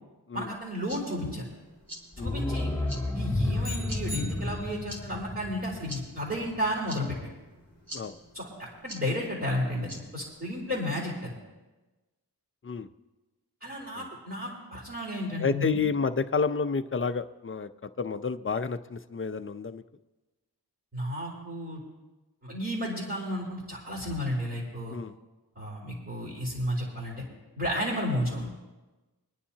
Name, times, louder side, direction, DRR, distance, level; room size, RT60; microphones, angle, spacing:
voice 1, 0.3-1.5 2.2-2.7 3.1-7.3 8.3-11.4 13.6-15.8 20.9-21.8 22.4-25.0 25.5-27.2 27.5-28.5, equal, 30° right, -4 dB, 3.5 m, -32 dB
sound 1, 0.6-10.8, equal, 60° right, 3.3 m, -48 dB
sound 2, 2.1-6.9 7.2-7.3, left 2 dB, 5° left, 2.7 m, -32 dB
sound 3, 3.6-5.0, left 2 dB, 80° right, 2.0 m, -41 dB
voice 2, 15.4-19.8 24.9-25.1, left 5 dB, 30° left, 10 dB, 0.5 m, -30 dB
25.0 x 9.9 x 2.9 m, 1.1 s
wide cardioid pair, 65°, 40 cm